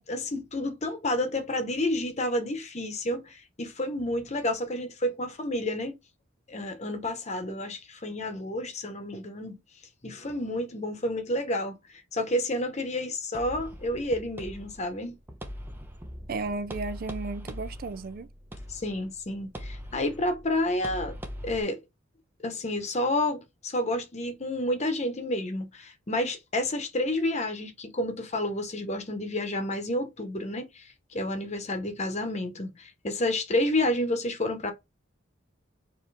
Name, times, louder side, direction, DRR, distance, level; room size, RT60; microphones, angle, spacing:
voice 1, 0.1-6.0 6.5-9.6 10.0-15.1 18.7-21.1 21.4-21.8 22.4-34.7, left 1 dB, 35° left, 1.0 m, -30 dB
sound 1, 13.3-21.6, equal, 10° right, 0.7 m, -41 dB
voice 2, 16.3-18.3, right 3 dB, 45° right, 0.4 m, -34 dB
4.7 x 2.9 x 3.4 m
head